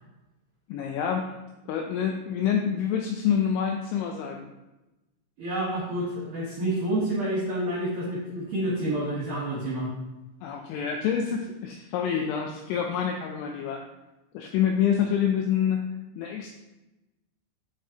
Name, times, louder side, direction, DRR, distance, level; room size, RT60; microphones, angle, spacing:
voice 1, 0.7-1.3 1.7-4.5 10.4-13.9 14.3-15.8 16.2-16.5, left 8 dB, 90° left, 2 dB, 2.7 m, -27 dB
voice 2, 5.4-9.9, right 1 dB, 90° right, -7 dB, 1.7 m, -28 dB
8.3 x 6.0 x 2.8 m, 1.0 s
omnidirectional pair, 6.0 m